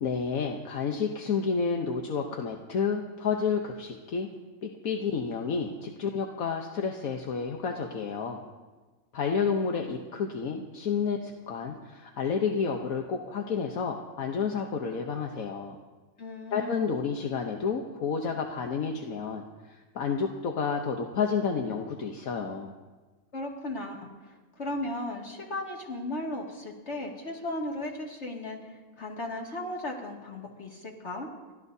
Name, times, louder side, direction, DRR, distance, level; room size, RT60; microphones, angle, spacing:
voice 1, 0.0-4.3 4.6-8.4 9.1-15.8 16.5-22.7, left 5 dB, 75° left, 2 dB, 1.4 m, -30 dB
voice 2, 16.2-16.9 23.3-24.1 24.6-28.6 29.0-31.3, left 1 dB, 50° left, -1 dB, 2.5 m, -36 dB
30.0 x 13.5 x 2.7 m, 1.3 s
omnidirectional pair, 1.5 m